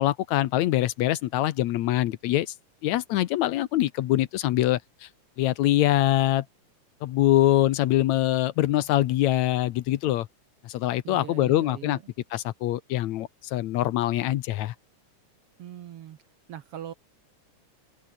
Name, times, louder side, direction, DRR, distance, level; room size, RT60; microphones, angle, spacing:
voice 1, 0.0-2.5 2.8-5.1 5.4-6.5 7.0-10.3 10.6-12.0 12.3-14.7, left 14 dB, 75° left, 2.1 m, -24 dB
voice 2, 11.0-12.0 15.6-16.2 16.5-16.9, right 10 dB, 60° right, 1.7 m, -40 dB
omnidirectional pair, 3.5 m